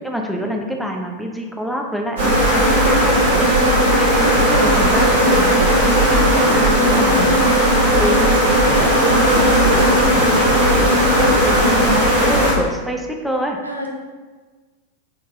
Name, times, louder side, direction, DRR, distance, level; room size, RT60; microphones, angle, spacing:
voice 1, 0.0-3.6 4.0-13.6, equal, ahead, 1 dB, 0.4 m, -27 dB
sound 1, 2.2-12.5, equal, 60° right, 1.4 m, -15 dB
voice 2, 3.5-4.2 6.2-6.6 8.6-9.5 13.6-13.9, equal, 85° right, 0 dB, 0.5 m, -29 dB
3.9 x 3.4 x 2.6 m, 1.4 s
figure-of-eight pair, 90°, 0 cm